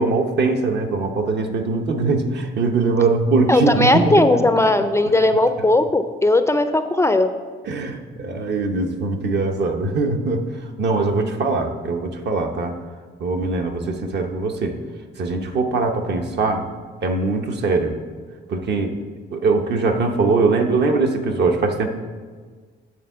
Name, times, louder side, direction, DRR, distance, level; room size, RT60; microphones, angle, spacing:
voice 1, 0.0-4.4 5.1-5.2 7.6-10.5 10.8-12.7 13.2-14.8 15.2-16.7 17.0-18.0 18.5-18.9 19.3-21.9, right 3 dB, 60° right, 4 dB, 0.9 m, -21 dB
voice 2, 3.5-7.3, left 2 dB, 15° left, 9 dB, 0.4 m, -17 dB
8.8 x 3.7 x 6.8 m, 1.5 s
cardioid pair, 90°, 20 cm